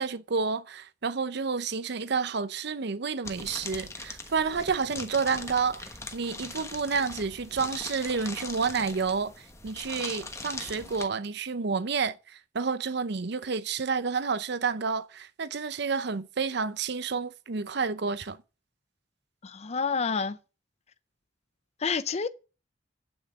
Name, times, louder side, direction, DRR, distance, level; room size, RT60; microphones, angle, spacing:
voice 1, 0.0-9.3 9.6-18.4, right 5 dB, 60° right, 0.6 m, -30 dB
sound 1, 3.2-11.1, left 3 dB, 15° left, 1.2 m, -41 dB
voice 2, 19.4-20.4 21.8-22.3, left 5 dB, 35° left, 0.5 m, -28 dB
8.7 x 5.8 x 7.8 m
head